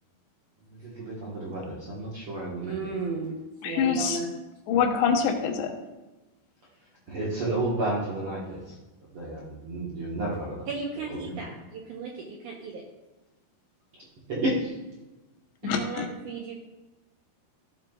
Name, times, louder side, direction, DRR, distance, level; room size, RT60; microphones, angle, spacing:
voice 1, 0.7-2.7 7.1-8.8 9.1-10.6 11.2-11.4 13.9-14.0 14.3-14.7, right 2 dB, 60° right, -6 dB, 1.4 m, -31 dB
voice 2, 2.6-3.4 3.6-4.3 10.7-12.8 15.6-16.5, right 4 dB, 75° right, -1 dB, 1.8 m, -35 dB
voice 3, 3.6-4.2 4.7-5.7 15.6-16.1, left 6 dB, 90° left, 3 dB, 3.2 m, -25 dB
15.0 x 7.7 x 2.4 m, 1.1 s
omnidirectional pair, 4.7 m